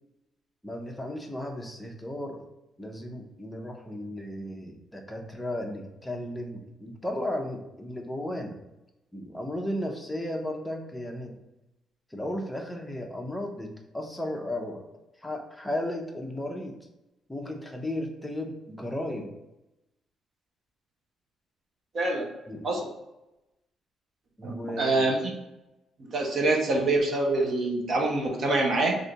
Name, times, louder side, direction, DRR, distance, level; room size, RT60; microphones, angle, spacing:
voice 1, 0.6-2.4 2.8-8.6 9.1-11.4 12.1-14.9 15.2-16.8 17.3-19.3 22.5-22.7 24.4-25.1, left 1 dB, 5° left, 2 dB, 0.6 m, -35 dB
voice 2, 21.9-22.3 22.6-22.9 24.4-25.2 26.0-29.0, right 2 dB, 50° right, 0 dB, 0.8 m, -25 dB
3.3 x 2.7 x 3.8 m, 0.95 s
cardioid pair, 115°, 0 cm